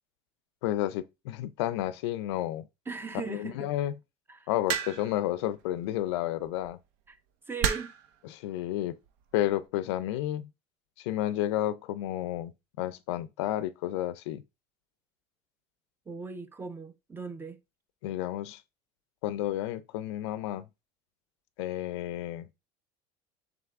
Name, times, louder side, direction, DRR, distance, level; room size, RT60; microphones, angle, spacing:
voice 1, 0.6-2.7 3.3-3.9 4.5-6.8 8.2-9.0 9.3-10.5 11.0-14.4 18.0-18.6 19.2-20.7 21.6-22.5, left 13 dB, 85° left, 0.4 m, -31 dB
voice 2, 2.9-3.7 4.3-4.5 7.1-7.2 7.5-7.9 16.1-17.6, right 4 dB, 15° right, 0.5 m, -39 dB
sound 1, 4.7-5.2 6.4-6.7 7.6-8.1 9.1-9.4, right 8 dB, 70° right, 0.7 m, -30 dB
3.7 x 3.4 x 3.5 m
supercardioid pair, 120°, 14 cm